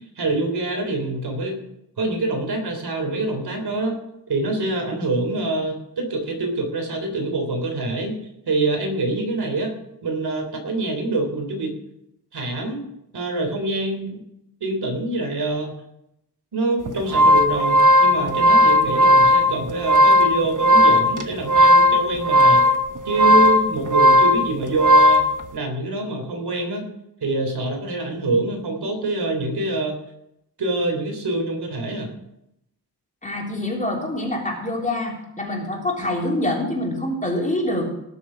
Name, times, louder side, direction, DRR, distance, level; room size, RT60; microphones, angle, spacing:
voice 1, 0.2-1.6 2.0-4.0 4.3-8.2 8.5-9.7 10.0-11.7 12.3-12.9 13.1-14.2 14.6-15.7 16.5-22.7 23.1-25.2 25.5-26.9 27.2-29.9 30.6-32.1, right 2 dB, 70° right, 3 dB, 3.6 m, -25 dB
sound 1, 16.9-25.3, left 1 dB, 50° right, 1.1 m, -15 dB
voice 2, 33.2-37.9, left 1 dB, 20° left, -2 dB, 3.4 m, -25 dB
18.5 x 7.2 x 6.3 m, 0.82 s
wide cardioid pair, 130°, 40 cm